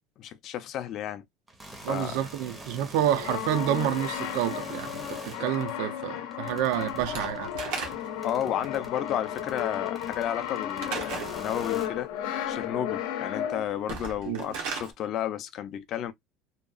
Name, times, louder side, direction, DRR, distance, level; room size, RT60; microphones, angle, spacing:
voice 1, 0.2-1.2 1.8-2.2 8.2-12.1 12.5-16.1, left 10 dB, 40° left, 0.4 m, -32 dB
sound 1, 1.5-11.9, right 1 dB, 10° right, 0.5 m, -46 dB
voice 2, 1.8-7.5 14.3-14.5, right 11 dB, 75° right, 0.4 m, -29 dB
Brass instrument, 3.1-13.9, left 10 dB, 85° left, 0.6 m, -34 dB
Slam / Wood, 7.0-8.3 10.8-11.4 13.8-14.9, right 5 dB, 90° right, 0.9 m, -35 dB
2.8 x 2.2 x 2.3 m
cardioid pair, 170°, 0 cm